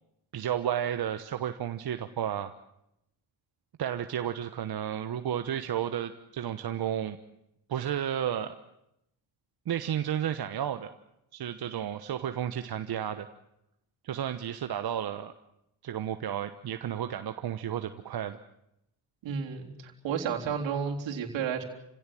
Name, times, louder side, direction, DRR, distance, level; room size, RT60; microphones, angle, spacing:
voice 1, 0.3-2.5 3.8-7.2 7.7-8.6 9.7-10.9 11.3-13.3 14.0-15.3 15.8-18.4, right 10 dB, 55° right, 8 dB, 1.3 m, -32 dB
voice 2, 19.2-21.6, right 7 dB, 75° right, 2 dB, 3.8 m, -32 dB
29.0 x 16.5 x 7.8 m, 0.83 s
supercardioid pair, 65°, 46 cm